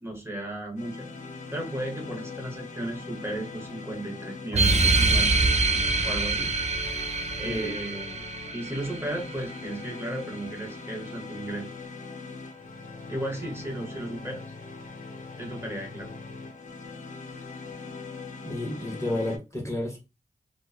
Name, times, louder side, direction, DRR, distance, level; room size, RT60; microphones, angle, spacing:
voice 1, 0.0-1.1 1.5-5.4 6.0-6.5 7.4-8.2 8.5-11.7 13.1-14.4 15.4-16.2, right 1 dB, 15° right, 0 dB, 1.1 m, -35 dB
sound 1, 0.8-19.4, left 4 dB, 60° left, 0.6 m, -41 dB
sound 2, 4.5-9.6, right 3 dB, 50° right, 0.5 m, -25 dB
voice 2, 7.4-7.8 18.4-20.0, left 1 dB, 20° left, 0 dB, 1.0 m, -31 dB
2.8 x 2.1 x 2.3 m, 0.26 s
cardioid pair, 40°, 15 cm